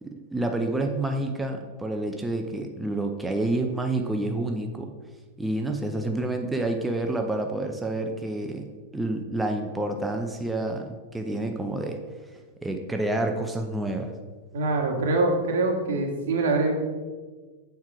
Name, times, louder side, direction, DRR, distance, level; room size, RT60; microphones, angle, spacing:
voice 1, 0.0-4.9 5.4-12.0 12.6-14.1, right 2 dB, 5° right, 3 dB, 0.5 m, -29 dB
voice 2, 14.5-16.7, right 2 dB, 75° right, 1 dB, 1.7 m, -24 dB
7.5 x 4.7 x 4.7 m, 1.4 s
supercardioid pair, 145°, 0 cm